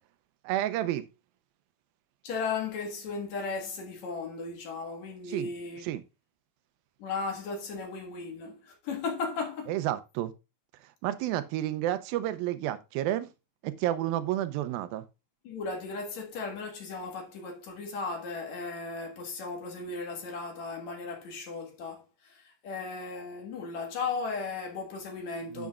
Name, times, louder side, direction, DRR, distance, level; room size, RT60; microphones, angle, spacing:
voice 1, 0.4-1.1 5.3-5.5 5.8-6.0 9.7-10.3 11.0-13.3 13.6-15.0 25.5-25.7, right 13 dB, 80° right, 2.4 m, -30 dB
voice 2, 2.2-5.8 7.0-9.7 15.4-22.0 22.6-25.7, left 4 dB, 55° left, 2.7 m, -36 dB
10.0 x 7.0 x 2.4 m
omnidirectional pair, 4.3 m